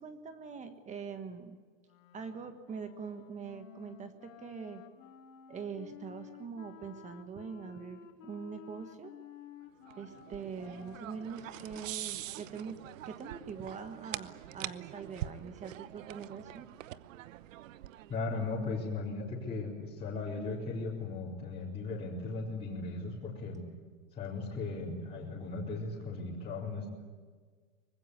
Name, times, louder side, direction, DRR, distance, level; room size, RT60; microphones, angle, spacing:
voice 1, 0.0-1.6 2.1-4.8 5.5-9.1 10.0-12.8 13.0-16.7, right 6 dB, 20° right, 9 dB, 1.4 m, -43 dB
Wind instrument woodwind instrument, 1.8-13.9, left 10 dB, 75° left, 3.0 m, -54 dB
sound 1, 9.9-18.4, right 13 dB, 75° right, 1.0 m, -44 dB
voice 2, 18.1-23.6 24.1-26.9, left 3 dB, 15° left, -6 dB, 4.1 m, -37 dB
24.0 x 20.5 x 9.6 m, 1.5 s
supercardioid pair, 155°, 39 cm